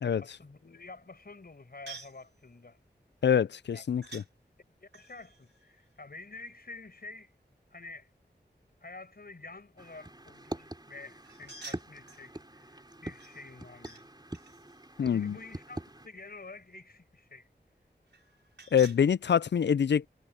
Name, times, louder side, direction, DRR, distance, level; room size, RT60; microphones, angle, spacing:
voice 1, 0.2-2.8 3.7-3.8 4.8-7.3 7.7-8.1 8.8-14.0 15.1-17.5, left 3 dB, 60° left, 5.1 m, -49 dB
sound 1, 1.9-2.2 4.0-4.3 4.9-6.7 11.2-12.3 13.2-14.0 14.3-16.2 18.1-19.0, right 3 dB, 90° right, 5.6 m, -50 dB
voice 2, 3.2-4.2 15.0-15.4 18.7-20.1, left 8 dB, 80° left, 0.4 m, -25 dB
sound 2, 9.8-16.1, right 1 dB, 25° right, 4.1 m, -44 dB
wide cardioid pair, 50°, 18 cm